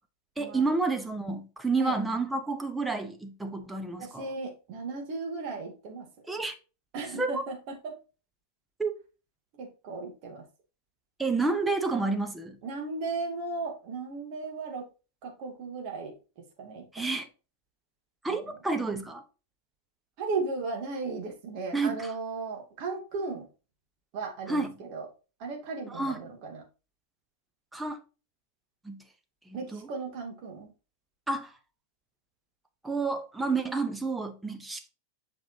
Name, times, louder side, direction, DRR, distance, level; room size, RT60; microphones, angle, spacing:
voice 1, 0.4-4.3 6.3-6.5 7.2-7.4 8.8-8.9 11.2-12.6 16.9-17.3 18.2-19.2 21.7-22.1 24.5-24.8 25.9-26.2 27.7-28.0 28.8-29.0 29.5-29.9 31.3-31.5 32.8-34.9, right 3 dB, 5° right, 1.0 m, -30 dB
voice 2, 4.0-6.1 6.9-7.9 9.6-10.4 12.6-14.9 15.2-16.1 16.6-17.0 18.2-18.5 20.2-23.5 24.1-25.1 25.4-26.6 29.5-30.7, right 3 dB, 45° right, 2.3 m, -36 dB
7.6 x 5.3 x 2.7 m
figure-of-eight pair, 90°, 0 cm